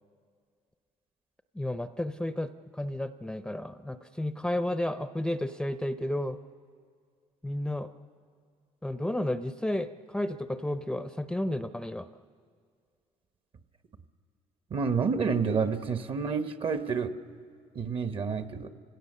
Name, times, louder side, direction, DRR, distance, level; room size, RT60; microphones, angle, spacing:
voice 1, 1.5-6.4 7.4-7.9 8.8-12.1, left 1 dB, 5° left, 11 dB, 0.5 m, -32 dB
voice 2, 14.7-17.1 17.7-18.7, right 5 dB, 50° right, 10 dB, 1.1 m, -29 dB
30.0 x 17.0 x 6.8 m, 2.1 s
cardioid pair, 105°, 12 cm